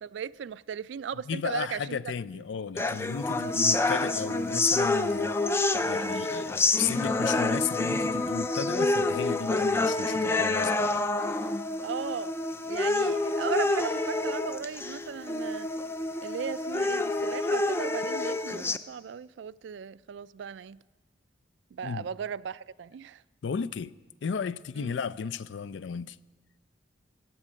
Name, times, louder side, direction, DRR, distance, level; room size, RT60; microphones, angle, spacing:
voice 1, 0.0-2.0 11.8-12.3 12.7-15.7 16.2-20.8 21.7-23.2 24.8-24.9, right 7 dB, 80° right, 0.3 m, -37 dB
voice 2, 1.1-11.0 11.4-11.6 21.8-22.1 23.4-26.2, left 6 dB, 80° left, 0.4 m, -34 dB
sound 1, 2.8-18.8, left 2 dB, 15° left, 0.3 m, -28 dB
16.0 x 9.7 x 6.3 m
head